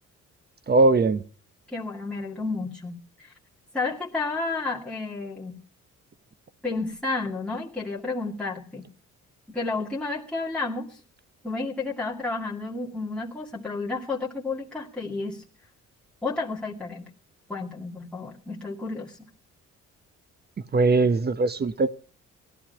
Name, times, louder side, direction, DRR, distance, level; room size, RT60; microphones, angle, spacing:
voice 1, 0.7-1.2 20.7-21.9, right 3 dB, 35° right, 0.9 m, -20 dB
voice 2, 1.7-3.3 3.7-5.6 6.6-8.8 9.5-11.0 11.4-15.4 16.2-17.1 17.5-19.2, left 3 dB, 5° left, 2.3 m, -31 dB
17.0 x 12.5 x 5.6 m
cardioid pair, 90°, 30 cm